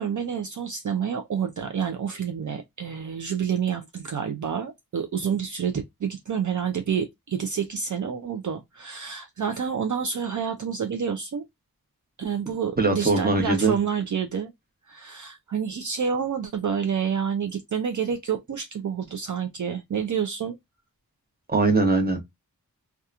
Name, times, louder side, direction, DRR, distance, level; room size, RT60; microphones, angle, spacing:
voice 1, 0.0-11.4 12.2-14.5 14.9-20.6, right 7 dB, 60° right, 0.4 m, -28 dB
voice 2, 12.8-13.7 21.5-22.2, right 3 dB, 25° right, 0.9 m, -21 dB
2.8 x 2.3 x 2.4 m
wide cardioid pair, 40°, 35 cm